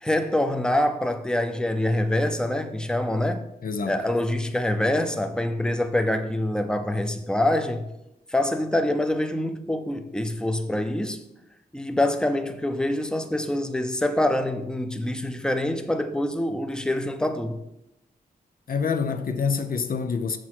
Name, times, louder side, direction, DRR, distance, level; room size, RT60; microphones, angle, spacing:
voice 1, 0.0-3.5 3.9-7.8 8.3-11.2 11.7-17.6, left 1 dB, 5° left, 0.6 m, -25 dB
voice 2, 3.6-4.0 18.7-20.4, left 5 dB, 65° left, 0.6 m, -26 dB
7.2 x 6.2 x 4.5 m
wide cardioid pair, 120°, 16 cm